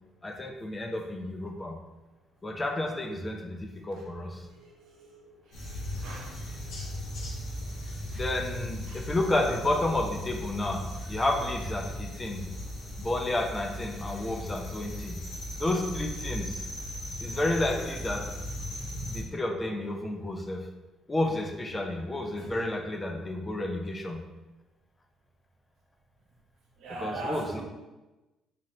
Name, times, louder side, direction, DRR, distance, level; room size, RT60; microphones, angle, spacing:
voice 1, 0.2-1.8 2.4-4.4 8.1-12.4 13.0-15.2 15.6-16.6 17.2-18.3 19.1-20.7 21.1-24.2 27.0-27.6, left 1 dB, 25° left, 3 dB, 0.6 m, -31 dB
voice 2, 4.6-5.1 6.0-6.3 6.9-7.0 8.9-9.0 22.4-22.5 26.8-27.6, right 2 dB, 75° right, -1 dB, 1.0 m, -39 dB
sound 1, 5.5-19.2, left 1 dB, 70° left, 1.3 m, -37 dB
4.2 x 2.5 x 3.2 m, 1.1 s
supercardioid pair, 80°, 0 cm